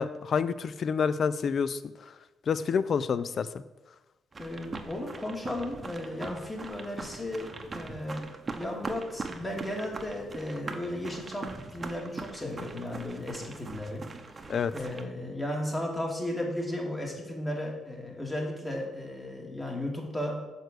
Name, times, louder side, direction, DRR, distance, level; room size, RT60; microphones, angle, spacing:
voice 1, 0.0-1.8 2.5-3.5 14.5-14.7, left 6 dB, 55° left, 15 dB, 0.4 m, -28 dB
sound 1, 4.3-15.0, right 3 dB, 30° right, 0.8 m, -41 dB
voice 2, 4.4-8.3 8.6-14.0 14.7-20.4, left 1 dB, 20° left, 0 dB, 2.0 m, -35 dB
6.5 x 4.8 x 6.6 m, 1.1 s
cardioid pair, 90°, 0 cm